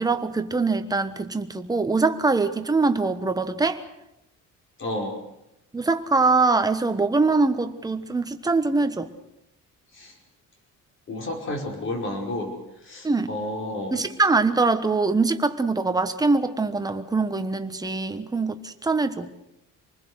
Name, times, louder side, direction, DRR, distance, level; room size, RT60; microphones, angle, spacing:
voice 1, 0.0-3.8 5.7-9.1 13.0-13.4 13.9-19.3, right 3 dB, 10° right, 8 dB, 1.3 m, -23 dB
voice 2, 4.8-5.1 9.9-10.1 11.1-12.5 12.8-14.0, left 1 dB, 40° left, 2 dB, 5.2 m, -31 dB
27.0 x 20.0 x 6.4 m, 0.87 s
cardioid pair, 150°, 32 cm